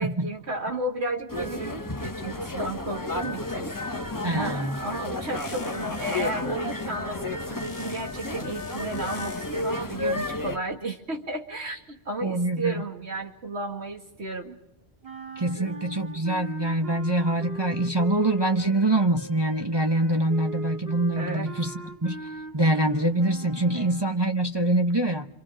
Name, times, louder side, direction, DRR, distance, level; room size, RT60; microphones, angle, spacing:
voice 1, 0.0-3.8 4.3-14.6 15.5-15.7 21.2-21.5 23.7-23.9, right 2 dB, 85° right, 2 dB, 2.4 m, -33 dB
sound 1, 1.3-10.6, left 2 dB, 20° left, 1.0 m, -32 dB
voice 2, 4.2-4.8 12.2-12.8 15.4-25.3, right 1 dB, 25° right, 3 dB, 0.8 m, -25 dB
sound 2, 4.4-6.6 7.5-9.8, left 4 dB, 80° left, 1.6 m, -47 dB
sound 3, 15.0-24.2, right 1 dB, 60° right, 2.2 m, -40 dB
29.5 x 26.0 x 5.0 m, 0.88 s
omnidirectional pair, 1.1 m